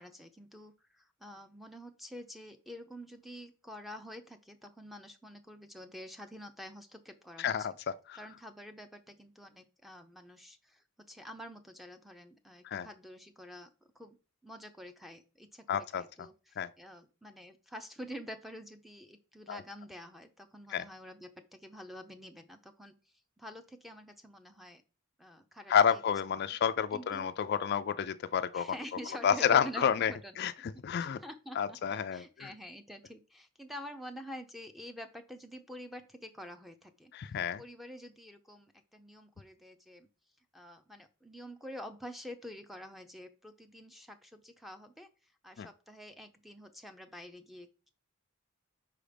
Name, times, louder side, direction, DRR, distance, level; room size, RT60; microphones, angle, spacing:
voice 1, 0.0-7.7 8.1-14.2 14.4-22.9 23.4-24.8 25.2-26.0 26.9-27.3 28.5-30.4 31.0-37.1 37.6-40.1 40.5-45.1 45.4-47.9, equal, ahead, 0.6 m, -48 dB
voice 2, 7.4-8.2 12.6-12.9 15.7-16.0 16.6-16.7 19.5-19.6 20.7-20.8 25.7-28.7 29.2-31.2 31.6-32.5 37.1-37.6 45.6-45.7, left 8 dB, 50° left, 0.3 m, -30 dB
5.0 x 4.8 x 5.1 m
head